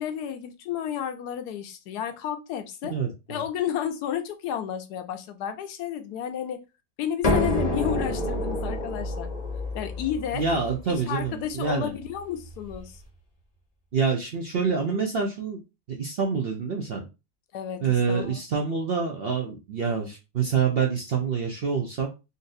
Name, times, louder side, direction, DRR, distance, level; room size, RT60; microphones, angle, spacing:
voice 1, 0.0-2.9 3.3-6.6 7.0-9.3 9.7-10.4 10.9-13.0 17.5-18.4, left 9 dB, 85° left, 7 dB, 1.2 m, -32 dB
voice 2, 2.9-3.4 10.3-11.9 13.9-15.6 15.9-17.1 17.8-22.1, right 5 dB, 60° right, 1 dB, 0.6 m, -26 dB
sound 1, 7.2-12.8, left 1 dB, 35° left, 0.7 m, -29 dB
4.0 x 2.6 x 2.5 m, 0.27 s
omnidirectional pair, 1.6 m